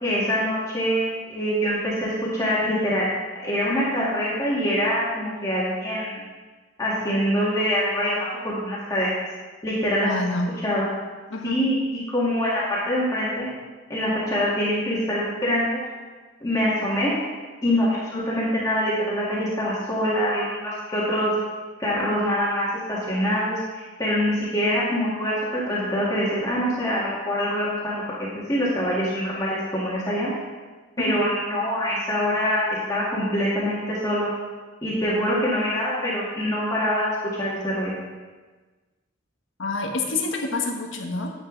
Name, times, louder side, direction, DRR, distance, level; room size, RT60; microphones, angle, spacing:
voice 1, 0.0-3.1 3.4-6.2 6.8-9.1 9.6-10.1 10.6-10.9 11.4-11.8 12.1-13.5 13.9-15.8 16.4-17.1 17.6-21.3 21.8-28.0 28.5-30.3 31.0-34.3 34.8-37.1 37.4-37.9, equal, 15° left, -8 dB, 2.0 m, -24 dB
voice 2, 10.0-10.5 11.3-11.6 31.0-31.2 39.6-41.3, left 2 dB, 75° left, 1 dB, 1.4 m, -27 dB
10.5 x 8.3 x 4.0 m, 1.3 s
head